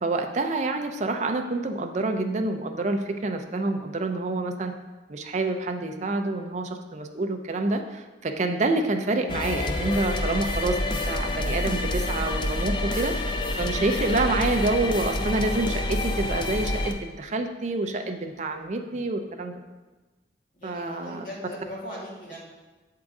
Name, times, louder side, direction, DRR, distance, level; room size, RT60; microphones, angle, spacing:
voice 1, 0.0-4.7 5.1-13.3 13.6-19.5 20.6-21.2, right 2 dB, 40° right, 5 dB, 0.5 m, -27 dB
sound 1, 9.3-16.9, left 2 dB, 25° left, 0.4 m, -28 dB
voice 2, 20.5-22.4, equal, 45° left, -7 dB, 2.3 m, -39 dB
7.3 x 3.8 x 4.7 m, 1.2 s
head